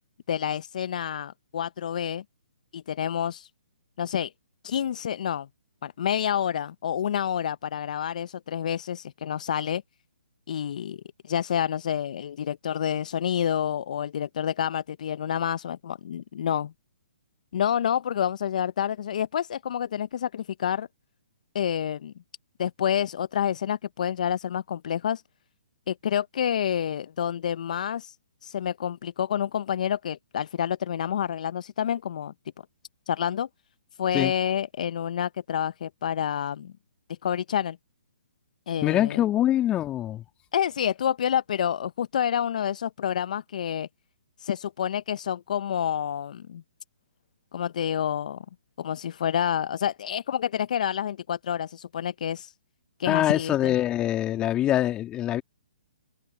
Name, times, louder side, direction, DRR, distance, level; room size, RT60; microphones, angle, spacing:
voice 1, 0.3-2.2 2.7-3.5 4.0-4.3 4.6-5.5 5.8-9.8 10.5-11.0 11.3-16.7 17.5-20.9 21.5-22.1 22.6-25.2 25.9-28.2 28.4-32.3 33.1-33.5 34.0-36.7 37.2-37.8 38.7-39.2 40.5-43.9 44.4-46.6 47.5-48.4 48.8-52.5 53.0-53.8, left 9 dB, 55° left, 0.8 m, -28 dB
voice 2, 38.8-40.2 53.1-55.4, left 12 dB, 20° left, 2.5 m, -24 dB
figure-of-eight pair, 135°, 5 cm